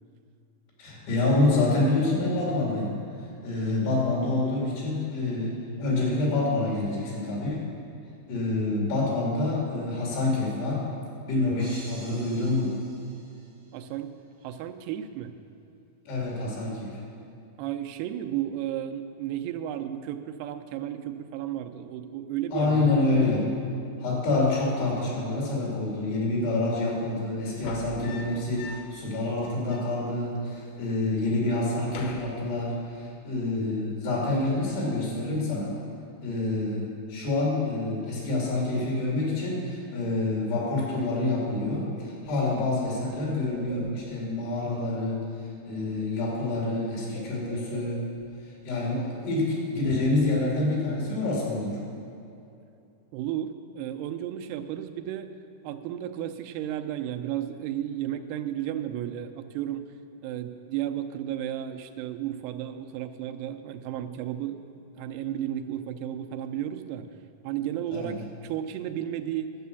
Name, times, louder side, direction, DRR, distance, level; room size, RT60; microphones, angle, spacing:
voice 1, 0.8-2.9 3.4-7.7 8.3-10.9 11.3-12.7 16.1-17.0 22.5-23.7 24.0-35.7 36.2-45.2 45.6-48.0 48.6-51.8 67.9-68.1, left 2 dB, 85° left, -4 dB, 5.0 m, -27 dB
sound 1, 11.6-13.8, right 1 dB, 55° right, 0.8 m, -49 dB
voice 2, 13.7-14.1 14.4-15.3 17.6-23.0 53.1-55.3 55.6-59.9 60.2-64.6 65.0-67.1 67.4-69.6, right 11 dB, 90° right, 7 dB, 2.7 m, -33 dB
sound 2, 27.5-29.1 29.4-29.5 29.7-30.7 31.0-31.3 31.6-33.1 34.3-34.7, left 3 dB, 70° left, 2.1 m, -43 dB
Bird, 41.8-44.3 45.4-45.6 45.9-48.3, right 2 dB, 30° left, 0.8 m, -48 dB
12.0 x 8.3 x 6.9 m, 2.7 s
omnidirectional pair, 4.6 m